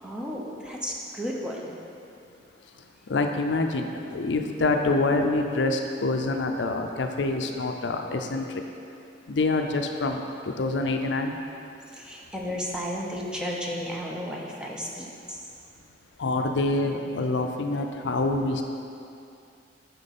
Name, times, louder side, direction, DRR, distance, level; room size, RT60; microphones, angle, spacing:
voice 1, 0.0-1.8 11.8-15.5, equal, 5° right, -3 dB, 0.8 m, -33 dB
voice 2, 3.1-8.6 9.3-11.3 16.2-18.6, left 2 dB, 75° left, 4 dB, 0.5 m, -26 dB
8.7 x 5.9 x 4.2 m, 2.6 s
head